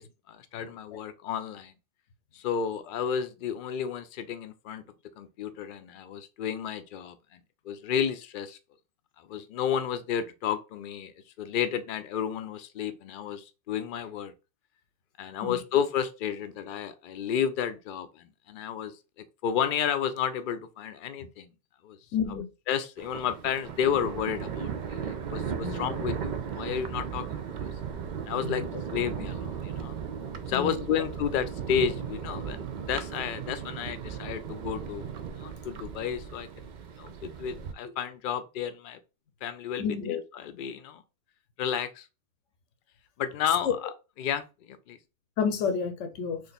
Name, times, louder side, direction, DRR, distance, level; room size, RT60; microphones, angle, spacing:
voice 1, 0.0-1.7 2.3-4.8 5.2-8.6 9.2-14.3 15.2-21.5 21.8-22.0 22.3-27.6 28.3-30.0 30.5-35.1 35.3-36.7 37.0-39.0 39.4-41.0 41.6-42.1 43.2-43.9 44.2-45.0, left 8 dB, 60° left, 0.6 m, -32 dB
voice 2, 22.1-22.5 25.6-25.8 28.4-28.6 30.5-30.8 39.8-40.2 43.6-43.7 45.4-46.4, left 6 dB, 85° left, 1.1 m, -30 dB
Thunder, 23.0-37.7, right 7 dB, 60° right, 0.5 m, -36 dB
3.2 x 2.6 x 4.0 m
omnidirectional pair, 1.2 m